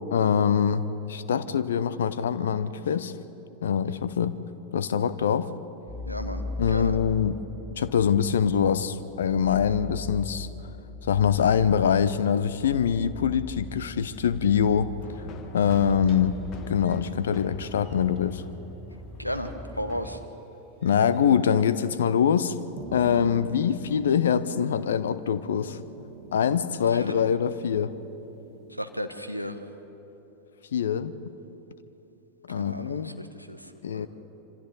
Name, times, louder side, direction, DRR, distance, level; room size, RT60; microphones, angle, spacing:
voice 1, 0.1-3.1 3.6-4.4 4.7-5.5 6.6-7.4 7.8-10.5 11.0-15.0 15.5-16.4 16.7-18.4 20.8-25.8 26.3-28.0 30.7-31.1 32.5-33.1 33.8-34.1, left 8 dB, 65° left, 15 dB, 0.8 m, -24 dB
sound 1, 5.9-20.3, left 2 dB, 10° right, 1.6 m, -41 dB
voice 2, 6.1-6.4 6.7-7.0 19.2-20.2 26.9-27.1 28.8-29.6 32.6-34.1, equal, 90° left, 9 dB, 1.1 m, -34 dB
sound 2, 15.0-20.2, left 4 dB, 35° left, 1.4 m, -45 dB
sound 3, 15.8-18.4 19.4-19.5 20.0-20.2 20.8-21.2 22.1-22.3 22.5-29.0, right 7 dB, 30° right, 1.4 m, -47 dB
26.5 x 25.5 x 4.0 m, 3.0 s
figure-of-eight pair, 90°, 0 cm